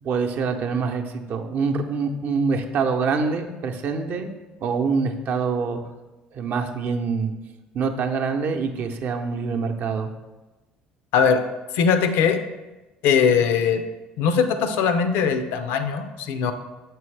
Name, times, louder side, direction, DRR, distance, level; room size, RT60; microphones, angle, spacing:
voice 1, 0.0-4.3 4.6-5.8 6.3-7.3 7.7-10.1, right 5 dB, 55° right, 5 dB, 0.7 m, -25 dB
voice 2, 11.7-12.4 13.0-13.8 14.2-16.5, left 6 dB, 70° left, 8 dB, 0.5 m, -20 dB
6.9 x 4.6 x 3.3 m, 1.1 s
hypercardioid pair, 70°, 4 cm